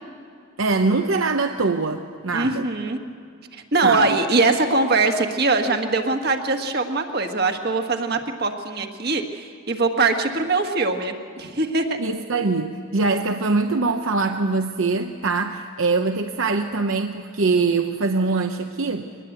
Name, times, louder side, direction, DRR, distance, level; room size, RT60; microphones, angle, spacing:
voice 1, 0.6-2.7 3.8-4.2 12.0-19.1, right 3 dB, 70° right, 6 dB, 0.9 m, -23 dB
voice 2, 2.3-3.0 3.5-12.0, right 3 dB, 50° right, 5 dB, 1.7 m, -22 dB
23.0 x 20.5 x 8.1 m, 2.3 s
head